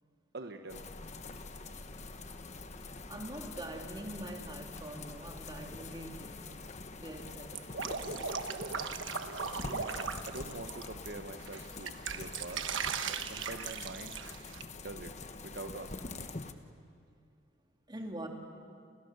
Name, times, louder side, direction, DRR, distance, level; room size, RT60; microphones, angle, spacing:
voice 1, 0.3-0.8 10.3-12.6 13.0-14.2 14.7-15.1 15.4-16.3, right 2 dB, 55° right, 5 dB, 1.1 m, -45 dB
sound 1, 0.7-16.5, left 3 dB, 35° left, 1.2 m, -45 dB
voice 2, 3.1-6.6 7.0-8.1 17.9-18.3, right 1 dB, 20° right, 2 dB, 2.8 m, -44 dB
Drip, 7.5-11.1 11.5-14.6, right 6 dB, 75° right, 1.2 m, -38 dB
29.5 x 29.0 x 6.8 m, 2.2 s
head